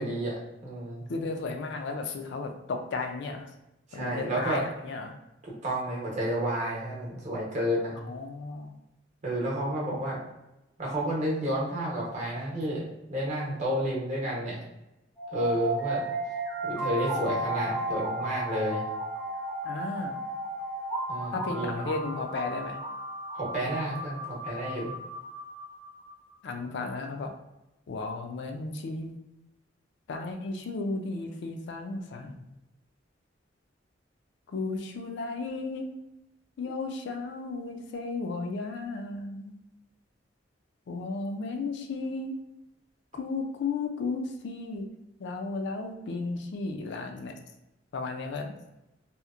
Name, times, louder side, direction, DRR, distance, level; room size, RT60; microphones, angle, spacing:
voice 1, 0.0-1.0 3.9-4.6 5.6-8.0 9.2-10.2 10.8-14.6 15.3-16.0 16.6-18.8 21.1-21.9 23.3-24.9, right 1 dB, 40° right, -4 dB, 0.8 m, -31 dB
voice 2, 1.1-3.5 3.9-5.2 8.0-8.7 19.6-20.2 21.3-22.8 26.4-27.3 27.9-29.1 30.1-32.5 34.5-35.9 36.6-39.6 40.9-42.4 43.1-44.9 45.2-47.4 47.9-48.6, left 3 dB, 65° left, 5 dB, 0.3 m, -34 dB
sound 1, 15.2-26.1, right 1 dB, 15° left, 0.5 m, -34 dB
2.8 x 2.1 x 2.3 m, 0.95 s
head